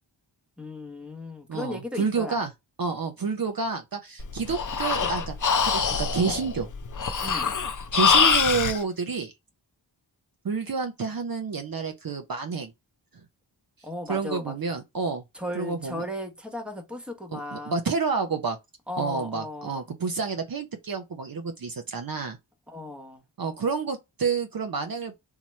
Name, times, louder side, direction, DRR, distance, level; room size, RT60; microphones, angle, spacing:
voice 1, 0.6-2.4 7.2-7.5 13.8-14.6 15.3-17.8 18.9-19.8 22.7-23.2, left 1 dB, ahead, 0.8 m, -36 dB
voice 2, 1.5-2.5 2.8-5.4 5.6-6.7 7.9-9.3 10.4-12.7 14.1-15.2 15.6-16.0 17.3-18.6 19.0-22.4 23.4-25.2, right 5 dB, 50° right, 0.6 m, -29 dB
Breathing, 4.2-8.8, left 6 dB, 45° left, 0.5 m, -24 dB
2.9 x 2.0 x 3.1 m
wide cardioid pair, 55°, 45 cm